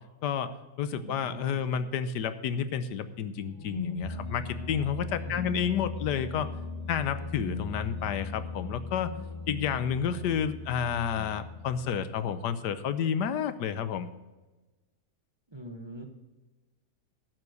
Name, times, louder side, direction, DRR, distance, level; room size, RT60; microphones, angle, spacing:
voice 1, 0.2-6.5 6.9-9.1 9.5-14.1, left 8 dB, 80° left, 13 dB, 1.4 m, -30 dB
voice 2, 0.9-1.9 5.2-5.8 15.5-16.1, right 1 dB, 20° right, 4 dB, 0.9 m, -43 dB
sound 1, 3.5-12.3, left 3 dB, 30° left, 0.6 m, -38 dB
12.0 x 7.7 x 6.4 m, 1.2 s
omnidirectional pair, 1.8 m